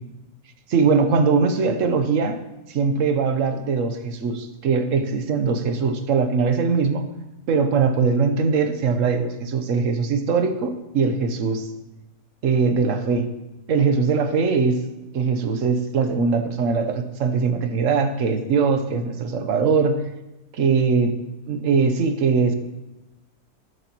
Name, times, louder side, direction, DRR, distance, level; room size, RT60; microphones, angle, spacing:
voice 1, 0.7-2.4 2.7-7.0 7.5-11.7 12.4-13.3 13.7-14.8 15.1-20.0 20.5-21.2 21.5-22.5, right 5 dB, 60° right, 8 dB, 1.2 m, -21 dB
13.5 x 11.0 x 3.0 m, 0.98 s
omnidirectional pair, 1.6 m